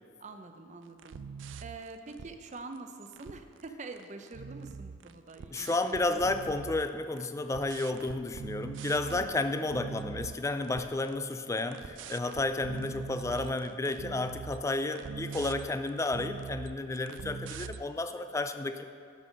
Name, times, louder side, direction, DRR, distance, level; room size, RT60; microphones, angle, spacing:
voice 1, 0.2-1.2 1.6-6.3 9.0-9.9, right 3 dB, 40° right, 7 dB, 0.7 m, -46 dB
sound 1, 1.0-2.8 3.0-3.6 3.9-7.3 7.5-9.3 9.7-10.4 10.6-17.8, right 5 dB, 80° right, 0.4 m, -42 dB
voice 2, 5.5-18.9, left 2 dB, 15° left, 9 dB, 0.4 m, -32 dB
11.5 x 5.5 x 6.5 m, 2.3 s
head